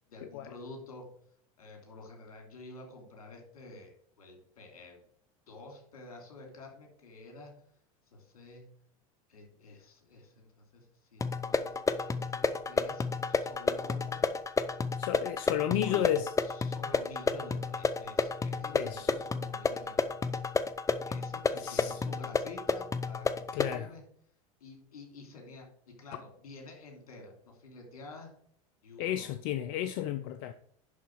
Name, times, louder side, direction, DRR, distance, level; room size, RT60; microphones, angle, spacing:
voice 1, 0.1-1.1 1.6-3.9 4.2-5.0 5.5-7.5 8.1-8.7 9.3-14.2 15.6-20.1 21.0-24.0 24.6-25.6 26.0-28.3 28.8-29.3, left 2 dB, 85° left, 3.0 m, -49 dB
sound 1, 11.2-23.8, left 4 dB, 15° left, 0.7 m, -31 dB
voice 2, 15.0-16.3 18.7-19.1 21.6-22.0 23.5-23.9 29.0-30.5, left 11 dB, 65° left, 0.6 m, -32 dB
11.0 x 4.0 x 6.3 m
hypercardioid pair, 95°, 18 cm